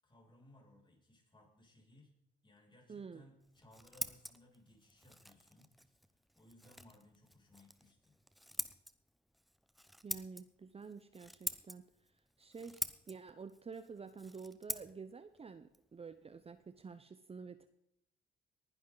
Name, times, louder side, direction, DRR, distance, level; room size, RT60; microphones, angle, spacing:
voice 1, 0.0-2.1 2.4-5.7 6.4-8.2, left 1 dB, 25° left, -1 dB, 6.9 m, -63 dB
voice 2, 2.9-3.2 10.0-12.1 12.4-17.7, right 5 dB, 30° right, 11 dB, 0.8 m, -50 dB
Scissors, 3.4-17.0, equal, ahead, 1.0 m, -47 dB
19.5 x 11.0 x 4.0 m, 0.76 s
cardioid pair, 90°, 20 cm